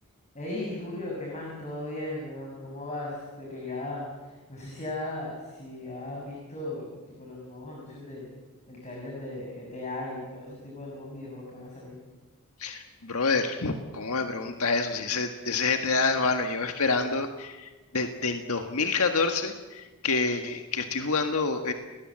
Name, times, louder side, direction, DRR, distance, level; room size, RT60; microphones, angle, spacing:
voice 1, 0.3-8.3 8.7-12.0, left 2 dB, 30° left, -2 dB, 6.8 m, -37 dB
voice 2, 12.6-21.7, left 4 dB, 80° left, 5 dB, 1.6 m, -27 dB
29.5 x 20.0 x 7.6 m, 1.2 s
head